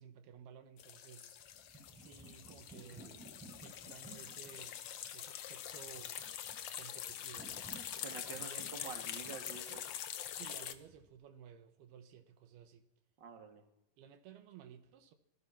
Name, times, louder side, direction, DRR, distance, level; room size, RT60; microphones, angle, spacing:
voice 1, 0.0-3.2 3.6-4.8 5.1-6.2 6.7-7.7 8.2-8.9 10.3-12.9 14.0-15.2, right 8 dB, 80° right, 9 dB, 3.2 m, -56 dB
sound 1, 0.8-10.7, left 10 dB, 75° left, 1.5 m, -45 dB
sound 2, 1.4-11.1, right 3 dB, ahead, 5.1 m, -57 dB
voice 2, 8.0-9.9 13.2-13.6, right 5 dB, 30° right, 4 dB, 2.7 m, -48 dB
26.0 x 20.5 x 6.0 m, 0.87 s
omnidirectional pair, 4.4 m